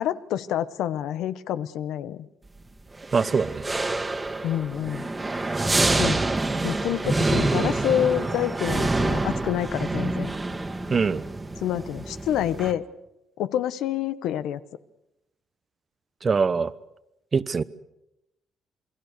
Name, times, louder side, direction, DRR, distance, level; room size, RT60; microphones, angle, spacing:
voice 1, 0.0-2.3 4.4-5.1 5.9-6.2 6.6-10.3 11.6-12.8 13.4-14.6, left 11 dB, 85° left, 13 dB, 1.0 m, -27 dB
sound 1, 3.0-12.7, right 2 dB, 20° right, 1.9 m, -27 dB
voice 2, 3.1-3.7 10.9-11.2 16.2-16.7 17.3-17.6, right 5 dB, 40° right, 15 dB, 1.0 m, -23 dB
28.0 x 21.0 x 6.7 m, 0.88 s
cardioid pair, 90°, 0 cm